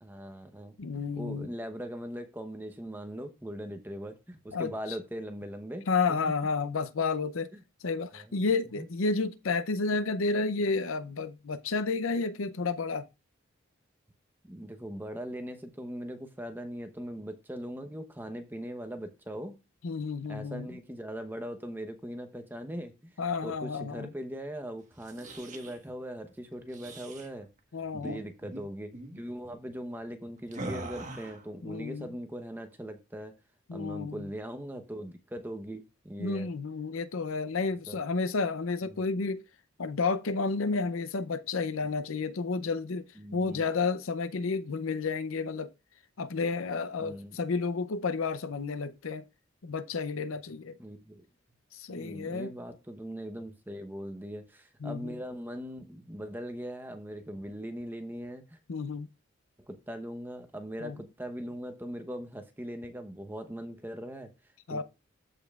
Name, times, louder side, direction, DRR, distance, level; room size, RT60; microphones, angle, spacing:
voice 1, 0.0-6.3 7.5-7.6 8.1-8.4 8.7-8.9 14.4-19.6 20.3-23.1 23.4-27.5 28.0-33.3 33.7-36.5 37.9-38.0 38.8-39.0 43.2-43.7 47.0-47.4 50.8-51.3 51.9-58.6 59.7-64.3 64.7-64.8, equal, 10° right, 0.8 m, -40 dB
voice 2, 0.8-1.5 4.5-4.7 5.9-7.5 7.8-13.1 19.8-20.7 23.2-24.1 27.7-28.2 31.6-32.1 33.7-34.2 36.2-39.4 39.8-43.1 43.3-45.7 46.2-49.2 49.6-50.8 51.7-52.5 54.8-55.2 58.7-59.1 60.8-61.0 64.7-64.8, left 4 dB, 75° left, 0.6 m, -31 dB
sound 1, 24.9-25.8 26.7-27.3 27.9-28.2 28.4-28.6 28.9-29.2 30.5-31.5, right 2 dB, 35° right, 1.4 m, -41 dB
14.0 x 5.3 x 2.4 m
head